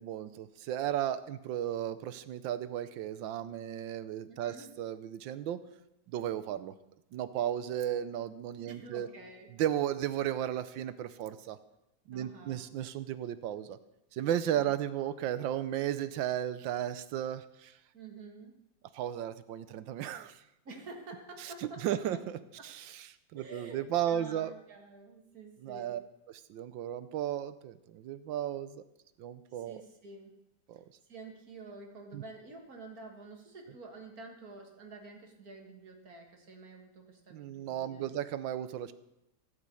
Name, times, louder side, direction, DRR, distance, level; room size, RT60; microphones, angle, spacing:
voice 1, 0.0-5.6 6.1-6.7 7.1-9.1 9.6-11.6 12.1-13.8 14.1-17.7 18.9-20.3 21.8-22.2 22.6-22.9 23.3-24.5 25.6-26.0 26.5-28.8 29.2-29.8 30.7-30.8 32.1-32.2 37.3-38.9, right 11 dB, 90° right, 13 dB, 1.5 m, -34 dB
voice 2, 4.3-4.7 8.6-9.5 12.1-12.7 17.9-18.6 20.7-22.2 22.6-22.7 23.3-26.0 29.5-30.3 31.1-38.1, right 3 dB, 55° right, 2 dB, 2.0 m, -49 dB
15.5 x 5.4 x 8.3 m, 0.87 s
omnidirectional pair, 2.0 m